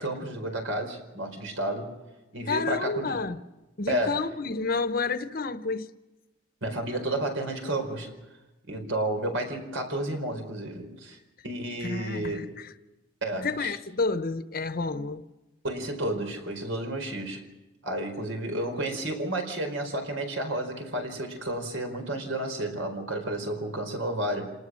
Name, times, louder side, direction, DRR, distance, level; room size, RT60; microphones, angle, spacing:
voice 1, 0.0-1.9 2.3-3.2 3.9-4.2 6.6-8.1 8.7-11.2 11.4-12.5 13.2-13.7 15.6-17.4 17.8-24.5, right 1 dB, 85° right, 4.7 m, -31 dB
voice 2, 2.5-3.4 3.8-5.9 11.8-12.7 13.4-15.2, left 4 dB, 45° left, 0.9 m, -30 dB
27.5 x 19.5 x 6.4 m
head